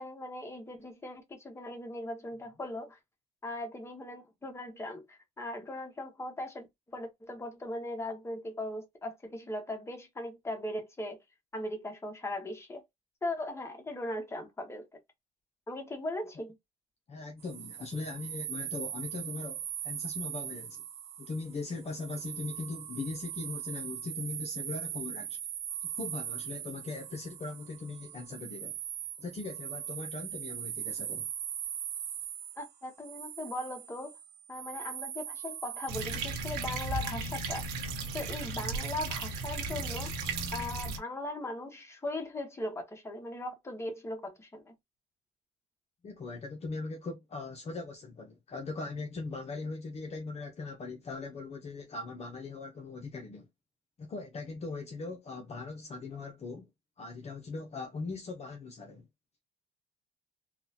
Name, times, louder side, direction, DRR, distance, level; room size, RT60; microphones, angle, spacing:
voice 1, 0.0-3.0 3.4-11.2 11.5-12.8 13.2-14.9 15.7-16.6 32.6-34.2 34.5-37.7 38.1-40.1 40.5-44.7, left 1 dB, 15° left, 1.1 m, -39 dB
voice 2, 17.1-20.8 21.2-25.4 25.8-28.7 29.2-31.3 38.6-38.7 46.0-53.5 54.0-56.7 57.0-59.1, left 3 dB, 40° left, 0.8 m, -40 dB
sound 1, 17.4-35.9, right 10 dB, 60° right, 0.8 m, -40 dB
sound 2, 35.9-41.0, right 3 dB, 90° right, 1.1 m, -35 dB
3.8 x 2.3 x 2.8 m
cardioid pair, 110°, 17 cm